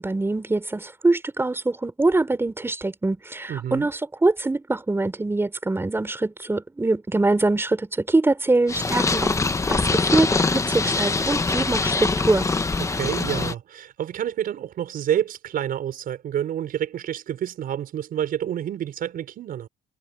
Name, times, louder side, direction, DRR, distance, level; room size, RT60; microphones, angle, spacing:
voice 1, 0.0-9.4 9.7-12.5, right 2 dB, 15° right, 4.6 m, -23 dB
voice 2, 3.5-3.9 12.8-19.7, right 10 dB, 60° right, 5.5 m, -28 dB
Purr, 8.7-13.5, left 3 dB, 20° left, 1.0 m, -23 dB
cardioid pair, 110°, 17 cm